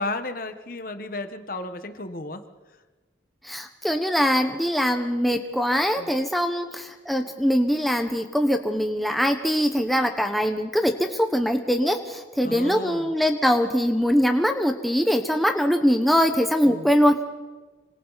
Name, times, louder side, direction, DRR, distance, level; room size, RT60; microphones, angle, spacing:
voice 1, 0.0-2.4 6.0-6.1 12.4-13.1 16.7-16.9, left 2 dB, 50° left, 8 dB, 1.2 m, -33 dB
voice 2, 3.4-17.2, equal, ahead, 4 dB, 1.1 m, -22 dB
26.0 x 25.0 x 4.1 m, 1.3 s
head